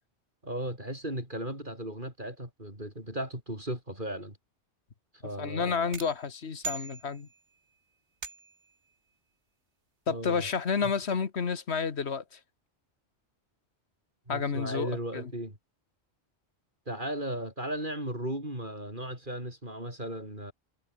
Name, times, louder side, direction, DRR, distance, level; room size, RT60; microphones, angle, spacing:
voice 1, 0.4-4.4 5.2-5.8 10.1-10.5 10.8-10.9 14.3-15.6 16.9-20.5, right 1 dB, 45° right, 7.1 m, -36 dB
voice 2, 5.4-7.3 10.1-12.4 14.3-15.3, left 5 dB, 70° left, 1.7 m, -30 dB
sound 1, 5.9-7.6 8.2-8.8, right 4 dB, 80° right, 2.4 m, -41 dB
omnidirectional pair, 1.2 m